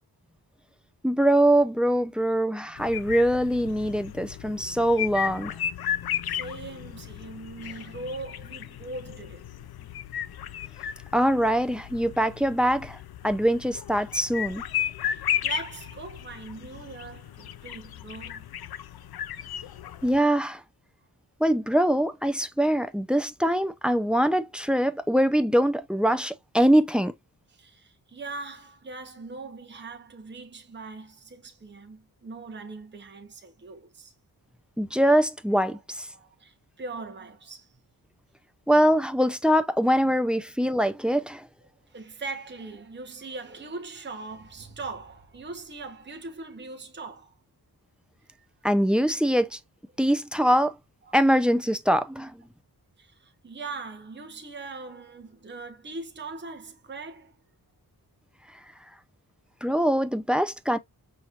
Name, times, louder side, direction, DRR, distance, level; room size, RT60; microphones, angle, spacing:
voice 1, 1.0-5.5 11.1-13.0 13.2-14.6 20.0-20.6 21.4-27.1 34.8-36.1 38.7-41.4 48.6-49.6 50.0-50.7 51.1-52.4 59.6-60.8, equal, 5° right, 0.4 m, -23 dB
sound 1, 2.8-20.2, left 10 dB, 70° left, 0.5 m, -35 dB
voice 2, 6.2-9.4 15.1-18.5 27.5-34.1 35.6-35.8 36.1-37.7 41.9-47.3 48.3-48.4 51.1-51.2 53.0-57.3, right 3 dB, 30° right, 0.9 m, -40 dB
5.8 x 3.1 x 2.4 m
wide cardioid pair, 155°, 39 cm